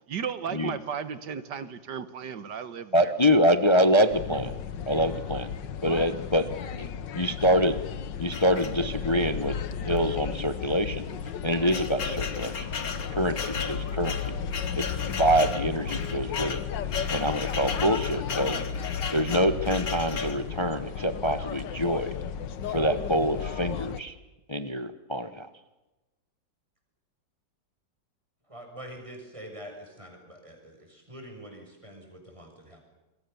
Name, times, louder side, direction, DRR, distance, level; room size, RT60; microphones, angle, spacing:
voice 1, 0.0-3.3, right 7 dB, 65° right, 1.9 m, -35 dB
voice 2, 2.9-4.5 4.9-5.5 5.8-6.5 6.8-6.9 7.1-7.8 8.2-9.5 9.8-11.0 11.4-12.7 13.1-14.3 14.8-16.6 17.1-18.6 19.1-22.1 22.7-24.1 24.5-25.5, equal, 20° left, 0.9 m, -25 dB
sound 1, 4.1-24.0, left 7 dB, 70° left, 1.8 m, -34 dB
sound 2, 8.3-9.2 9.9-10.0 10.3-10.4 11.1-20.4, left 5 dB, 50° left, 1.9 m, -36 dB
voice 3, 28.5-32.8, right 1 dB, 15° right, 6.7 m, -45 dB
27.5 x 22.0 x 7.0 m
omnidirectional pair, 2.0 m